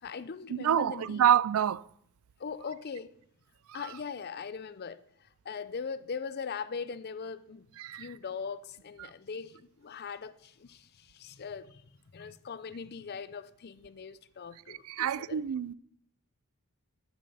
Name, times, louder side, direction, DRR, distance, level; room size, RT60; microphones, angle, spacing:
voice 1, 0.0-1.3 2.4-3.1 3.7-7.7 7.9-11.9 12.1-15.4, left 5 dB, 45° left, 0.5 m, -40 dB
voice 2, 0.6-1.8 7.8-8.1 14.9-15.7, right 9 dB, 70° right, 0.3 m, -27 dB
9.9 x 7.4 x 5.5 m
head